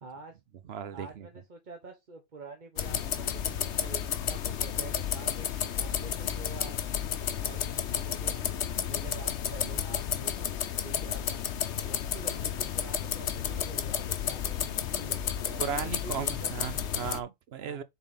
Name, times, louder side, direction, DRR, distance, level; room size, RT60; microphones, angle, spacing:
voice 1, 0.0-0.4 0.9-6.8 7.4-10.5 10.8-11.4 11.8-16.5 17.6-17.8, right 4 dB, 35° right, 1.0 m, -47 dB
voice 2, 0.7-1.3 15.6-17.8, right 8 dB, 55° right, 0.8 m, -36 dB
sound 1, 2.8-17.2, left 9 dB, 60° left, 1.0 m, -32 dB
6.9 x 4.0 x 4.0 m
omnidirectional pair, 1.5 m